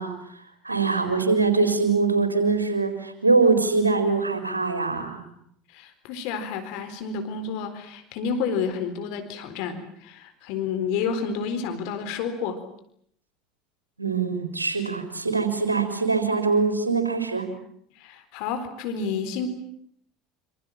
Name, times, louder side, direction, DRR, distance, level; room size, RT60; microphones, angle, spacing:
voice 1, 0.0-5.3 14.0-17.5, right 4 dB, 90° right, 6 dB, 4.2 m, -23 dB
voice 2, 5.7-12.6 18.0-19.5, left 6 dB, 60° left, 8 dB, 4.0 m, -30 dB
27.0 x 26.5 x 7.4 m, 0.69 s
figure-of-eight pair, 70°, 0 cm